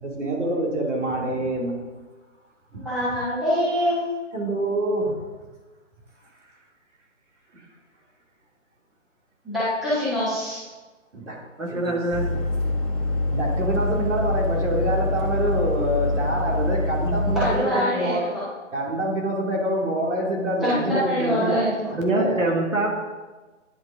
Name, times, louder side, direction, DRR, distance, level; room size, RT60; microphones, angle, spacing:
voice 1, 0.0-1.8 2.7-2.8 4.3-5.2 11.1-11.4 11.7-12.0 13.3-18.4 18.7-22.5, right 1 dB, 65° right, -2 dB, 2.5 m, -26 dB
voice 2, 2.7-4.1 9.4-10.6 17.3-18.4 20.6-21.9, equal, ahead, -14 dB, 1.3 m, -24 dB
voice 3, 11.6-12.3 21.6-21.7 21.9-22.9, right 2 dB, 85° right, 1 dB, 1.7 m, -24 dB
sound 1, 12.1-17.6, left 2 dB, 25° left, 1.8 m, -25 dB
10.0 x 4.5 x 3.6 m, 1.2 s
hypercardioid pair, 160°, 39 cm